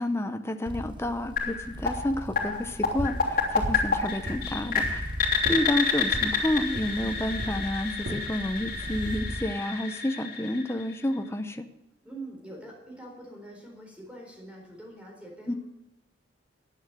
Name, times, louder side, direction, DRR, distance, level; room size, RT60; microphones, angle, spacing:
voice 1, 0.0-5.0 5.5-11.6 15.5-15.6, left 1 dB, 15° left, 7 dB, 0.7 m, -30 dB
sound 1, 0.7-9.6, right 1 dB, 25° right, 1.1 m, -40 dB
sound 2, 1.4-11.2, left 5 dB, 50° left, 3.2 m, -30 dB
sound 3, 3.0-3.2 3.6-3.9 4.2-5.0 5.4-5.6 6.1-6.3 6.7-6.9 7.4-7.6 8.0-8.2 8.8-9.1, right 1 dB, 65° right, 2.8 m, -34 dB
voice 2, 12.0-15.6, right 1 dB, 5° right, -1 dB, 4.1 m, -44 dB
10.5 x 9.0 x 7.6 m, 0.93 s
head